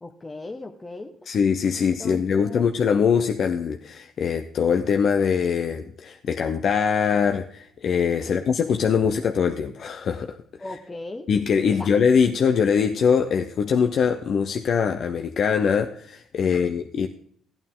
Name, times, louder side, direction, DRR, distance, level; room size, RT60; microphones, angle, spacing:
voice 1, 0.0-1.2 2.0-2.7 8.2-8.4 10.6-11.3 11.7-11.9 16.4-16.7, left 2 dB, 20° left, 0.9 m, -38 dB
voice 2, 1.3-10.4 11.3-17.1, left 6 dB, 60° left, 0.6 m, -22 dB
15.0 x 9.0 x 3.7 m
supercardioid pair, 75°, 0 cm